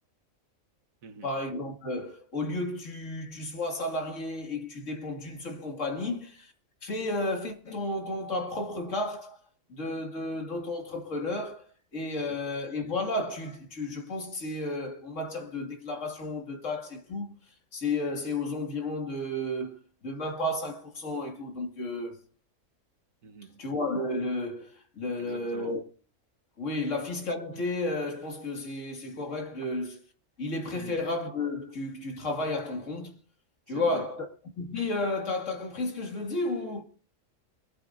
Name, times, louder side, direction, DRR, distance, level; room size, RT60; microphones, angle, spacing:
voice 1, 1.2-6.5 6.8-9.4 9.7-17.3 17.7-22.2 23.6-25.8 26.6-30.0 30.4-33.2 33.7-34.3 34.6-36.8, left 2 dB, 65° left, 2.4 m, -32 dB
voice 2, 23.2-23.6 25.2-25.8 30.7-31.0 33.7-34.1, right 6 dB, 80° right, 1.5 m, -44 dB
22.5 x 12.5 x 2.6 m
omnidirectional pair, 1.4 m